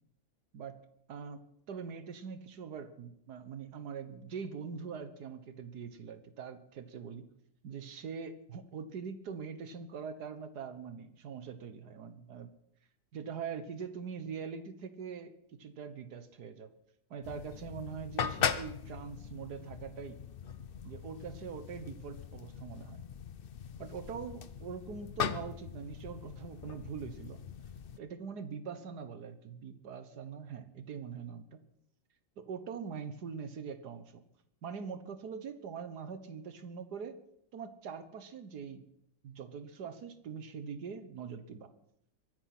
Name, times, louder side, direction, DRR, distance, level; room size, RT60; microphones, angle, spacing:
voice 1, 1.1-1.4 1.7-7.3 7.6-12.5 13.1-16.7 17.1-20.2 20.8-23.0 23.8-27.4 28.0-31.6 32.4-34.2 34.6-37.2 37.5-38.8 39.2-41.7, right 6 dB, 65° right, 11 dB, 1.7 m, -43 dB
sound 1, 17.2-28.0, left 7 dB, 60° left, 0.5 m, -40 dB
23.0 x 10.0 x 6.0 m, 0.72 s
omnidirectional pair, 1.9 m